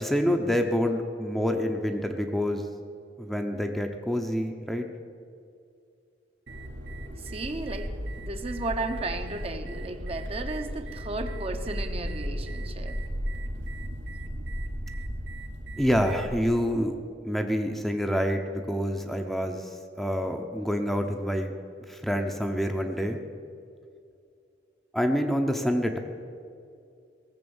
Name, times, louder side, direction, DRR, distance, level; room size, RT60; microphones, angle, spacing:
voice 1, 0.0-2.6 3.2-4.9 15.8-17.0 17.2-19.7 20.0-21.5 21.9-23.2 24.9-26.0, equal, ahead, 4 dB, 0.7 m, -27 dB
sound 1, 6.5-16.5, equal, 75° right, 1.5 m, -35 dB
voice 2, 7.2-13.0, right 2 dB, 35° right, 6 dB, 0.8 m, -34 dB
18.0 x 7.5 x 7.1 m, 2.4 s
head